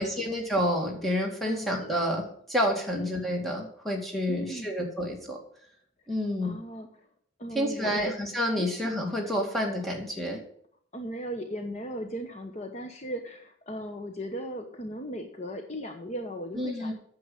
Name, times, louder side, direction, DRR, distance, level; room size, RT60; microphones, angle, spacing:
voice 1, 0.0-5.4 6.1-6.6 7.5-10.4 16.5-16.9, equal, ahead, -1 dB, 2.2 m, -29 dB
voice 2, 1.5-1.8 2.9-3.1 4.3-4.7 6.4-6.9 7.4-8.1 8.6-8.8 10.9-16.9, equal, 35° left, 5 dB, 1.0 m, -37 dB
9.4 x 7.0 x 7.2 m, 0.64 s
head